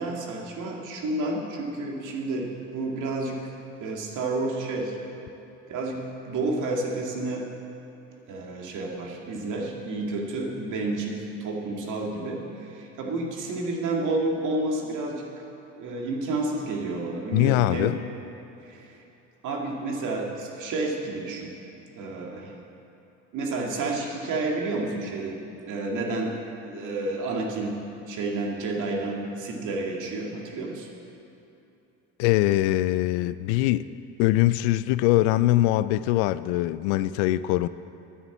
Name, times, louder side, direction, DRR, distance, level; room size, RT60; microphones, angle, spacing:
voice 1, 0.0-3.4 3.8-5.0 5.7-7.5 8.3-15.2 15.8-17.9 18.7-19.0 19.4-21.5 21.9-22.6 23.3-25.4 25.7-26.4 26.6-27.8 28.1-30.9, right 2 dB, 60° right, -1 dB, 2.3 m, -30 dB
voice 2, 17.3-18.0 32.2-33.9 34.2-37.7, left 15 dB, 85° left, 15 dB, 0.5 m, -22 dB
10.0 x 9.4 x 7.3 m, 2.8 s
supercardioid pair, 85°, 33 cm